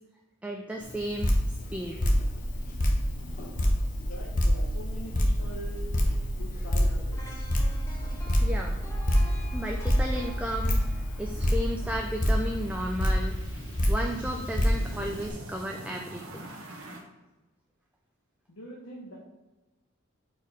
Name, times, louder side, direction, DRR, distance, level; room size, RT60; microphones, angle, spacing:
voice 1, 0.4-1.3 1.7-2.0 8.4-8.8 9.5-10.8 11.2-13.4 13.9-16.5, equal, 5° right, 1 dB, 0.4 m, -34 dB
Drip, 0.8-15.3, equal, 40° left, 0.9 m, -28 dB
sound 1, 2.2-17.0, right 1 dB, 65° right, 1.1 m, -36 dB
voice 2, 4.0-7.4 18.5-19.2, equal, 80° left, -5 dB, 1.1 m, -44 dB
sound 2, 7.1-13.1 13.5-13.7, equal, 15° left, 1.1 m, -48 dB
5.1 x 4.5 x 5.0 m, 1.1 s
head